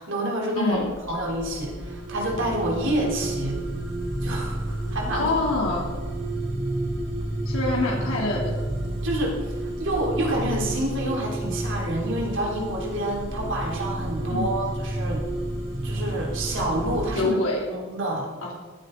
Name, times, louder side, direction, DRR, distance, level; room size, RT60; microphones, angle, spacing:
voice 1, 0.0-3.6 4.2-5.3 9.0-9.4 9.8-15.2 15.8-17.4 17.7-18.3, right 1 dB, 60° right, -1 dB, 3.5 m, -28 dB
voice 2, 0.6-0.9 5.1-5.9 7.4-8.5 14.3-14.5 17.1-17.6 18.4-18.5, left 2 dB, 80° left, -3 dB, 3.3 m, -25 dB
sound 1, 0.7-17.3, right 1 dB, 30° right, 3.5 m, -30 dB
17.5 x 10.5 x 3.9 m, 1.4 s
head